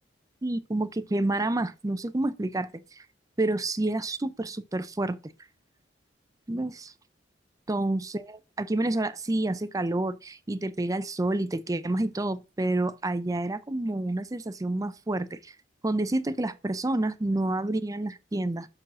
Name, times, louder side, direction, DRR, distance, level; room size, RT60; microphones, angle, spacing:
voice 1, 0.4-2.7 3.0-3.1 3.4-5.2 6.5-6.9 7.7-15.5 15.8-18.7, right 2 dB, 20° right, 0.5 m, -29 dB
6.3 x 4.7 x 6.0 m
head